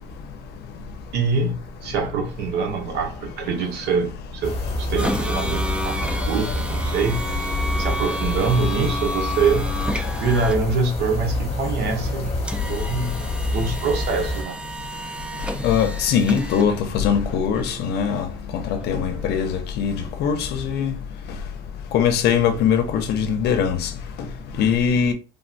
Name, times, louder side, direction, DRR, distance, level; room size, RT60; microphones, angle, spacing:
voice 1, 1.1-7.4 7.8-9.7 10.2-12.4 12.7-13.2 13.5-14.6, right 4 dB, 80° right, 0.8 m, -24 dB
sound 1, 4.4-14.4, left 2 dB, 35° left, 1.2 m, -27 dB
sound 2, 5.0-19.6, equal, 5° right, 0.4 m, -32 dB
voice 2, 15.6-20.9 21.9-23.9 24.6-25.1, left 7 dB, 75° left, 0.6 m, -21 dB
3.5 x 2.1 x 2.5 m
cardioid pair, 110°, 17 cm